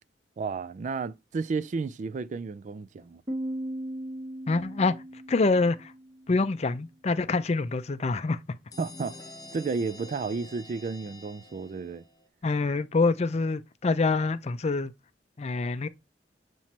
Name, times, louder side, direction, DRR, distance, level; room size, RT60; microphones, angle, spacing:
voice 1, 0.4-3.2 8.8-9.2 9.5-12.0, right 4 dB, 45° right, 0.3 m, -32 dB
Piano, 3.3-6.7, right 1 dB, 25° right, 1.1 m, -38 dB
voice 2, 4.5-5.0 5.3-5.9 6.3-8.4 12.4-14.9 15.4-15.9, left 3 dB, 40° left, 0.5 m, -26 dB
sound 1, 8.7-12.3, left 2 dB, 20° left, 0.9 m, -47 dB
7.4 x 3.1 x 4.3 m
head